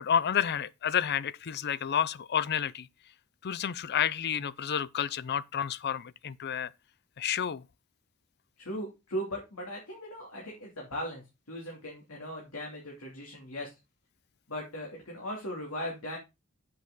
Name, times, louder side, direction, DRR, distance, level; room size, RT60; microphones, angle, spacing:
voice 1, 0.0-2.9 3.4-6.7 7.2-7.6, left 8 dB, 50° left, 0.5 m, -30 dB
voice 2, 8.6-13.7 14.5-16.2, equal, 75° left, 2.9 m, -38 dB
8.1 x 7.7 x 3.9 m
head